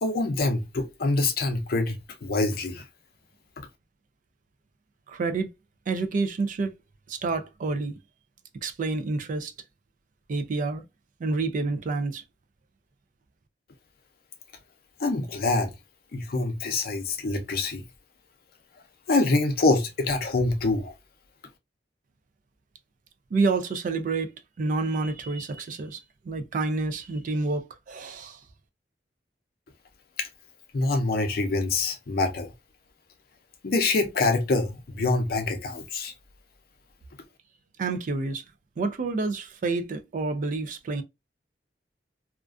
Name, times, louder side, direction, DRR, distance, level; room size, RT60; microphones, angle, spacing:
voice 1, 0.0-2.8 15.0-15.7 16.1-17.8 19.1-20.9 30.2-30.3 30.7-32.5 33.6-36.1, left 3 dB, 55° left, 0.5 m, -25 dB
voice 2, 5.1-5.5 5.9-6.7 7.1-8.0 8.6-9.5 10.3-10.8 11.2-12.2 23.3-24.3 24.6-26.0 26.2-28.4 37.8-38.4 38.8-41.0, right 3 dB, 45° right, 0.3 m, -28 dB
2.4 x 2.3 x 2.3 m
head